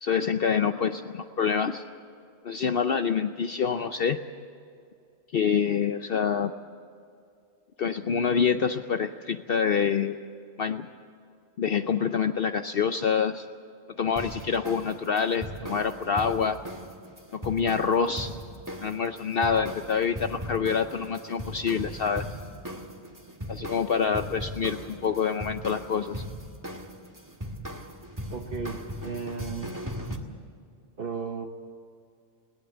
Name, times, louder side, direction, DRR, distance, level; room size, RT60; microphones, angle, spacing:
voice 1, 0.0-1.8 2.4-4.2 5.3-6.5 7.8-10.2 10.6-10.9 11.6-13.5 14.0-16.6 17.3-18.4 18.8-22.3 23.5-26.2, left 6 dB, 55° left, 8 dB, 0.9 m, -26 dB
sound 1, 14.2-30.2, equal, 15° right, 1.8 m, -39 dB
voice 2, 28.3-29.8 31.0-31.5, right 5 dB, 50° right, 3 dB, 1.3 m, -35 dB
21.0 x 17.5 x 8.0 m, 2.4 s
omnidirectional pair, 1.2 m